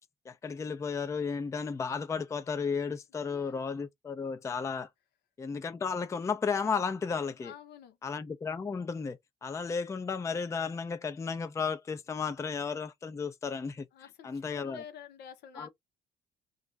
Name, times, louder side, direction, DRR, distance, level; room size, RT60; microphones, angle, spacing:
voice 1, 0.3-4.9 5.4-7.5 8.0-13.9 14.2-14.8 15.5-15.7, left 5 dB, 15° left, 0.4 m, -34 dB
voice 2, 3.2-3.6 7.4-8.0 13.9-15.7, left 8 dB, 75° left, 0.8 m, -49 dB
2.5 x 2.3 x 3.1 m
cardioid pair, 110°, 17 cm